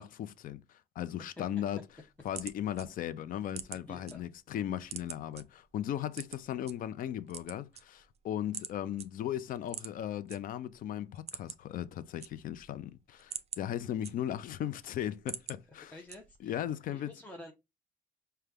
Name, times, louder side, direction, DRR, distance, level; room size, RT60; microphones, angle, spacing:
voice 1, 0.0-1.8 2.2-15.9 16.4-17.1, left 11 dB, 55° left, 0.4 m, -37 dB
sound 1, 1.9-4.1 4.5-5.4 6.1-6.7 7.2-8.2 8.5-8.7 9.0-9.1 9.6-10.4 10.7-10.8 11.1-11.7 12.0-12.7 13.1-14.5 14.9-15.6 16.1-16.5, right 8 dB, 40° right, 0.5 m, -43 dB
voice 2, 3.9-4.2 15.9-16.6 16.9-17.5, left 1 dB, 10° left, 0.6 m, -49 dB
5.0 x 2.2 x 3.4 m
cardioid pair, 110°, 17 cm